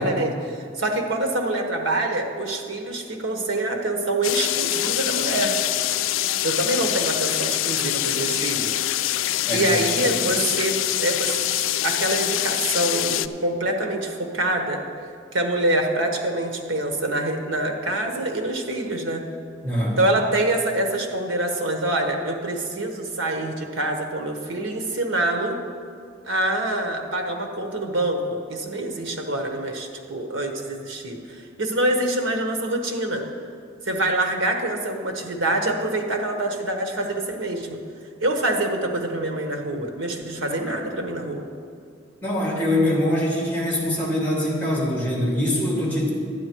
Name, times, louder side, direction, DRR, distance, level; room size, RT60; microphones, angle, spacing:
voice 1, 0.0-5.6 6.4-8.8 9.5-10.7 11.0-11.4 11.8-14.8 15.3-19.2 20.0-25.6 26.2-33.2 33.8-37.8 38.2-41.4, right 1 dB, 85° right, 3 dB, 1.3 m, -25 dB
sound 1, 4.2-13.3, left 13 dB, 90° left, 0.3 m, -25 dB
voice 2, 10.0-10.3 19.6-20.0 42.2-46.1, left 1 dB, 10° left, -3 dB, 2.4 m, -23 dB
12.0 x 9.3 x 4.6 m, 2.3 s
head